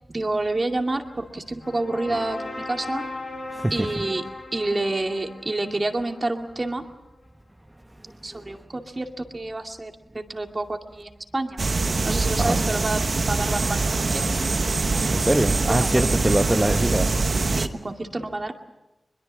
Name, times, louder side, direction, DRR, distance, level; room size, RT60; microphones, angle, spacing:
voice 1, 0.1-3.0 3.7-4.2 4.5-6.8 8.2-11.6 12.0-13.0 13.3-14.3 15.7-16.0 17.5-18.5, right 2 dB, 40° right, 2.3 m, -28 dB
sound 1, 0.9-6.8, left 2 dB, 70° left, 6.8 m, -38 dB
sound 2, 11.6-17.7, right 3 dB, 60° right, 1.2 m, -23 dB
voice 2, 15.1-17.1, right 1 dB, 15° right, 1.1 m, -23 dB
22.0 x 21.5 x 7.6 m
cardioid pair, 50°, 0 cm